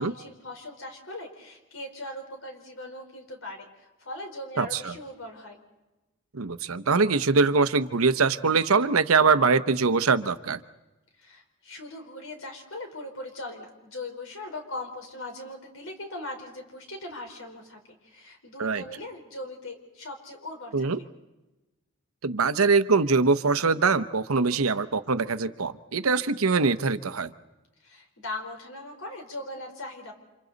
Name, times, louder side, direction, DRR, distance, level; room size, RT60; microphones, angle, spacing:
voice 1, 0.0-5.6 11.2-20.9 27.8-30.1, left 2 dB, 70° left, 4 dB, 4.1 m, -40 dB
voice 2, 4.6-4.9 6.3-10.6 18.6-18.8 20.7-21.0 22.2-27.3, right 4 dB, 90° right, 13 dB, 0.9 m, -23 dB
29.5 x 27.0 x 4.0 m, 1.1 s
head